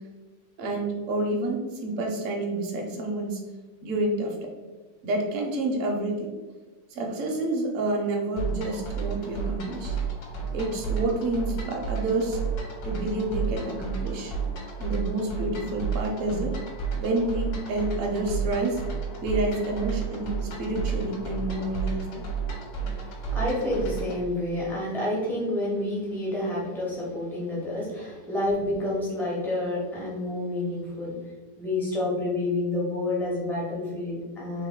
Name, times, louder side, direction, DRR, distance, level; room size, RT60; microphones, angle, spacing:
voice 1, 0.6-3.4 3.8-4.5 5.0-6.3 6.9-10.0 10.5-12.4 12.8-14.3 14.8-16.5 17.0-18.8 19.2-22.3, right 2 dB, 60° right, 0 dB, 0.9 m, -29 dB
sound 1, 8.4-24.2, right 5 dB, 65° left, 1.3 m, -32 dB
voice 2, 22.9-31.1 31.6-34.7, left 1 dB, 5° left, -6 dB, 0.4 m, -29 dB
3.1 x 2.7 x 3.6 m, 1.3 s
omnidirectional pair, 2.0 m